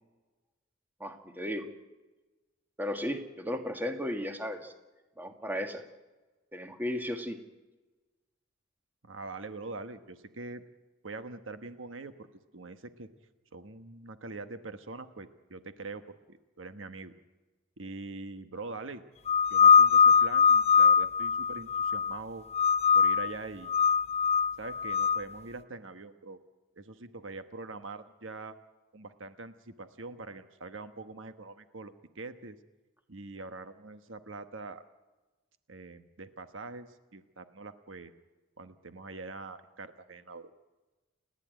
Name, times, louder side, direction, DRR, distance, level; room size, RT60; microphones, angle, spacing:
voice 1, 1.0-1.7 2.8-4.7 5.2-5.8 6.5-7.4, left 1 dB, 10° right, 5 dB, 1.8 m, -35 dB
voice 2, 9.0-10.6 11.0-12.3 12.5-13.1 13.5-17.1 17.8-19.0 19.5-22.4 22.9-23.7 24.6-26.4 26.7-28.5 28.9-32.6 33.1-34.8 35.7-38.1 38.6-40.5, right 3 dB, 75° right, 9 dB, 1.2 m, -43 dB
sound 1, 19.3-22.2 22.5-23.3 23.7-25.2, left 6 dB, 35° left, 0.7 m, -22 dB
29.5 x 11.0 x 9.2 m, 1.2 s
head